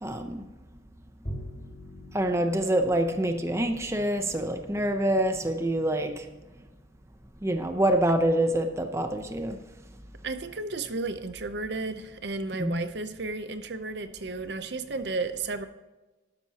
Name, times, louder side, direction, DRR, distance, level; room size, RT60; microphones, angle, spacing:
voice 1, 0.0-0.4 2.1-6.2 7.4-9.6 12.6-12.8, right 1 dB, 15° right, 6 dB, 0.7 m, -26 dB
Bowed string instrument, 1.2-7.7, equal, 35° left, 1.8 m, -46 dB
voice 2, 10.2-15.7, right 3 dB, 60° right, 10 dB, 0.7 m, -33 dB
12.0 x 12.0 x 2.9 m, 1.2 s
head